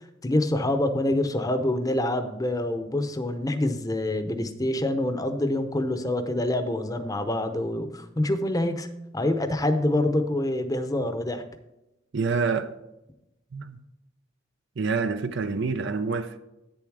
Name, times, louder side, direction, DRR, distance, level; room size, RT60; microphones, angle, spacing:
voice 1, 0.0-8.9 9.1-11.4, left 1 dB, 20° left, 0.7 m, -26 dB
voice 2, 12.1-12.7 13.5-13.8 14.8-16.4, right 4 dB, 65° right, 0.5 m, -27 dB
9.1 x 7.1 x 4.8 m
head